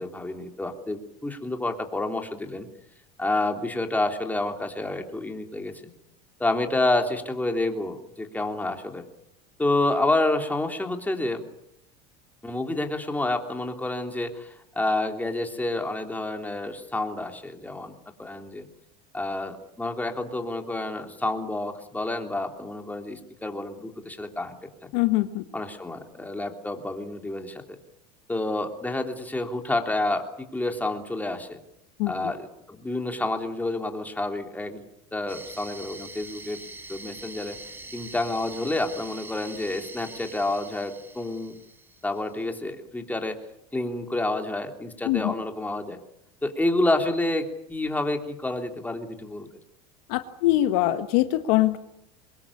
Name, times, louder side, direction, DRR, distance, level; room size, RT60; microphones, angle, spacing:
voice 1, 0.0-2.7 3.2-5.9 6.4-9.1 9.6-11.5 12.4-17.9 18.2-18.7 19.1-24.6 24.8-24.9 25.5-27.8 28.3-31.6 32.1-34.8 35.1-36.6 36.9-37.6 37.9-41.6 42.0-43.4 43.7-46.0 46.4-49.5, left 2 dB, 10° left, 4 dB, 3.3 m, -29 dB
voice 2, 24.9-25.4 32.0-32.1 45.0-45.3 50.1-51.8, left 15 dB, 75° left, 10 dB, 1.5 m, -23 dB
sound 1, 35.3-42.2, right 2 dB, 10° right, 2.0 m, -43 dB
23.5 x 20.5 x 8.6 m, 0.80 s
supercardioid pair, 110°, 20 cm